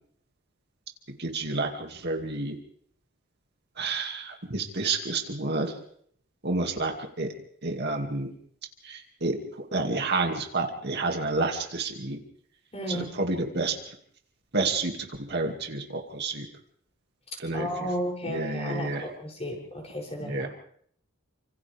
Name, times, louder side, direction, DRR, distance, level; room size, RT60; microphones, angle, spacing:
voice 1, 1.2-2.5 3.8-5.7 6.4-6.9 7.2-7.3 7.6-8.3 8.8-9.4 9.7-12.2 12.9-13.7 14.5-14.9 15.3-16.5 17.4-17.7 18.3-19.0 20.2-20.5, right 3 dB, 50° right, 3 dB, 2.5 m, -29 dB
voice 2, 12.7-13.1 17.5-20.5, equal, 30° left, -1 dB, 7.6 m, -33 dB
30.0 x 26.0 x 3.6 m, 0.65 s
head